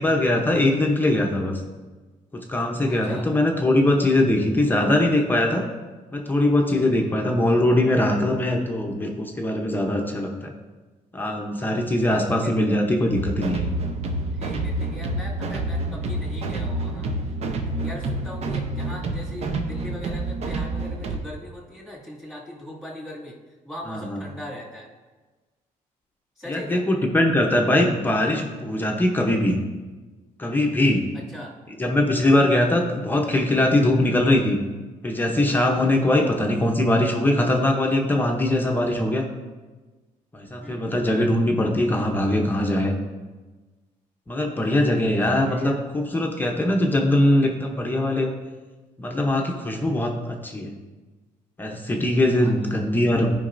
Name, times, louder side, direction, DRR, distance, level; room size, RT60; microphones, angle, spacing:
voice 1, 0.0-1.6 2.3-5.6 6.1-10.5 11.1-13.7 23.9-24.2 26.5-29.6 30.4-31.1 31.8-34.6 35.0-39.2 40.3-42.9 44.3-48.3 49.0-50.7 51.6-53.4, left 1 dB, 15° left, 1 dB, 0.8 m, -21 dB
voice 2, 2.9-3.3 6.9-7.1 12.1-12.5 14.3-17.1 17.6-23.4 23.6-24.9 26.4-26.8 31.1-31.6 36.0-36.3 40.6-40.9 45.3-45.8 52.4-52.5, left 1 dB, ahead, -5 dB, 2.2 m, -39 dB
sound 1, 13.1-21.2, right 2 dB, 55° right, 0.8 m, -28 dB
13.0 x 5.2 x 2.6 m, 1.3 s
cardioid pair, 125°, 13 cm